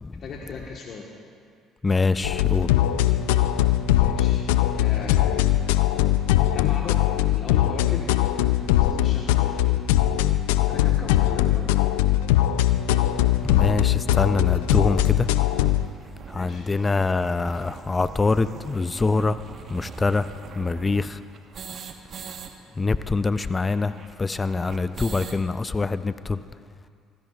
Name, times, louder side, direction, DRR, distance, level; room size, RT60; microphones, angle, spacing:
voice 1, 0.2-1.1 4.0-4.4 4.8-5.2 6.5-8.1 8.5-9.6 10.6-11.8 16.3-16.7, left 5 dB, 55° left, -1 dB, 1.4 m, -37 dB
voice 2, 1.8-2.7 13.4-15.3 16.3-19.4 19.7-20.3 20.6-21.2 22.8-26.4, left 3 dB, 25° left, 13 dB, 0.5 m, -24 dB
sound 1, 2.2-15.9, left 12 dB, 85° left, 0.4 m, -21 dB
sound 2, 13.8-13.9 14.6-14.7 15.0-15.1 15.3-15.4 15.8-22.5 22.8-22.9 23.1-25.4, right 6 dB, 55° right, 1.2 m, -41 dB
23.0 x 16.0 x 2.4 m, 2.2 s
hypercardioid pair, 65°, 0 cm